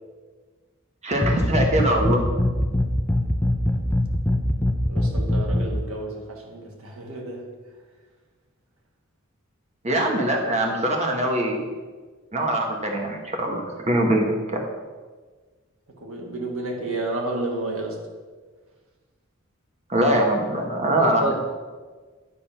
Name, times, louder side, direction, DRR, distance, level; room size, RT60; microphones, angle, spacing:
voice 1, 1.0-2.2 9.8-11.7 12.3-14.6 19.9-21.3, right 1 dB, 35° right, 1 dB, 1.2 m, -23 dB
sound 1, 1.1-5.8, left 1 dB, 10° left, 0.5 m, -22 dB
voice 2, 4.9-7.4 16.0-18.0 21.0-21.3, right 2 dB, 75° right, 0 dB, 1.6 m, -31 dB
9.9 x 3.7 x 5.7 m, 1.4 s
head